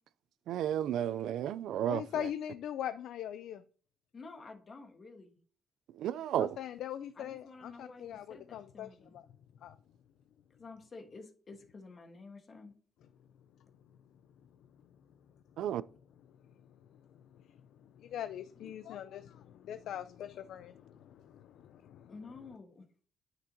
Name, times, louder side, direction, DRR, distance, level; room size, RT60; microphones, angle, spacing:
voice 1, 0.5-2.3 6.0-6.6 15.6-15.8, right 10 dB, 70° right, 0.4 m, -33 dB
voice 2, 1.9-3.6 6.4-9.2 9.6-9.8 16.9-22.1, left 10 dB, 65° left, 0.4 m, -42 dB
voice 3, 4.1-5.4 7.1-9.2 10.6-12.7 18.6-18.7 22.1-22.8, left 3 dB, 30° left, 1.4 m, -51 dB
9.6 x 6.0 x 2.8 m
cardioid pair, 175°, 0 cm